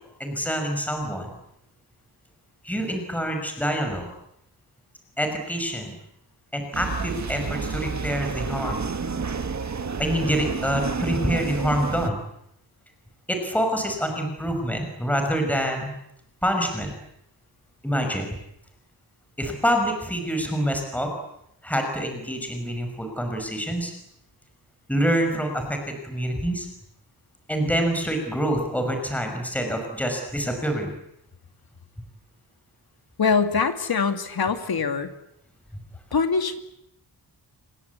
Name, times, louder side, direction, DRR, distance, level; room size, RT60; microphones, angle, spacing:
voice 1, 0.2-1.3 2.6-4.1 5.2-6.0 6.5-8.8 10.0-12.2 13.3-15.9 16.4-16.9 17.8-18.4 19.4-21.1 21.6-23.9 24.9-26.7 27.5-30.9, equal, 5° left, 4 dB, 6.1 m, -26 dB
sound 1, 6.7-12.1, right 5 dB, 40° right, 1.8 m, -30 dB
voice 2, 33.2-35.1 36.1-36.6, left 5 dB, 60° left, 7 dB, 2.7 m, -23 dB
29.0 x 24.0 x 8.5 m, 0.77 s
wide cardioid pair, 165°, 41 cm